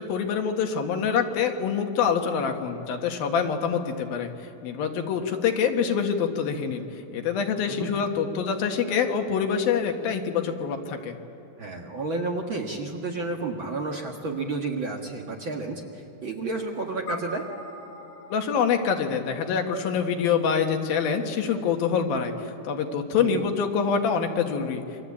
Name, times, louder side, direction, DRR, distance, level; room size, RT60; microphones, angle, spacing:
voice 1, 0.0-4.3 4.6-6.8 7.1-11.2 18.3-22.3 22.7-24.8, left 6 dB, 85° left, 4 dB, 3.5 m, -25 dB
voice 2, 11.6-17.5 23.2-23.5, right 3 dB, 45° right, 1 dB, 1.8 m, -31 dB
sound 1, 17.1-21.6, left 2 dB, 55° left, 3.5 m, -43 dB
28.5 x 24.0 x 8.6 m, 2.7 s
omnidirectional pair, 4.1 m